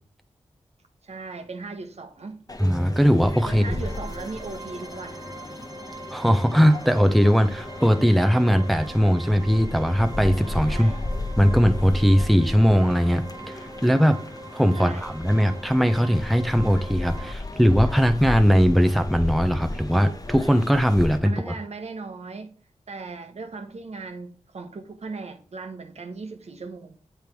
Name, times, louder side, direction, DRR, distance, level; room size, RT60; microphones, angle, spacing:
voice 1, 1.0-2.4 3.5-5.3 10.7-11.0 14.7-15.2 21.2-22.5 22.9-27.0, right 3 dB, 65° right, 1.0 m, -37 dB
sound 1, 2.5-21.2, left 2 dB, 30° left, 1.0 m, -34 dB
voice 2, 2.6-3.7 6.1-10.9 11.4-14.2 14.5-21.5, equal, ahead, 0.6 m, -20 dB
sound 2, 3.3-17.3, right 2 dB, 35° right, 0.9 m, -42 dB
7.8 x 3.5 x 4.5 m
cardioid pair, 45°, 12 cm